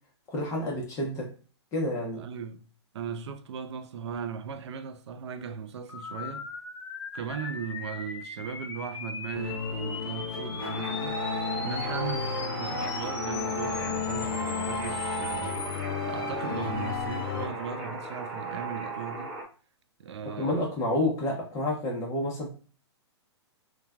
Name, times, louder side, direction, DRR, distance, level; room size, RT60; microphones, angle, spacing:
voice 1, 0.3-1.3 1.7-2.2 20.2-22.5, left 1 dB, 20° left, 0.7 m, -29 dB
voice 2, 2.1-2.6 2.9-6.5 7.1-11.2 11.6-19.3 20.0-20.7, right 7 dB, 70° right, 0.4 m, -38 dB
sound 1, 5.9-15.8, left 4 dB, 70° left, 0.8 m, -40 dB
sound 2, 9.3-17.5, left 7 dB, 55° left, 0.4 m, -33 dB
sound 3, 10.6-19.4, right 5 dB, 10° right, 0.8 m, -37 dB
3.2 x 2.2 x 2.3 m
hypercardioid pair, 140°, 15 cm